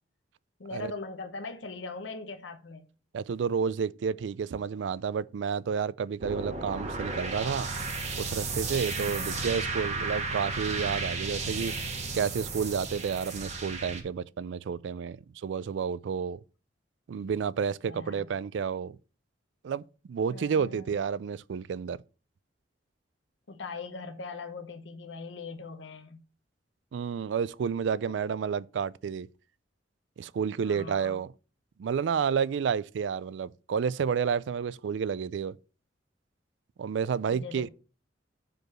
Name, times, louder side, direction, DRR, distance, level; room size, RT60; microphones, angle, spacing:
voice 1, 0.6-2.9 9.0-9.4 17.8-18.3 20.3-21.0 23.5-26.2 28.1-28.2 30.6-31.2 37.3-37.7, left 4 dB, 85° left, 0.9 m, -41 dB
voice 2, 3.1-7.7 8.2-11.7 12.1-16.4 17.1-19.0 19.6-22.0 26.9-29.3 30.2-31.3 31.8-35.6 36.8-37.7, right 6 dB, 80° right, 0.3 m, -30 dB
sound 1, 6.2-14.0, right 3 dB, 40° right, 1.2 m, -34 dB
5.1 x 4.7 x 6.1 m
head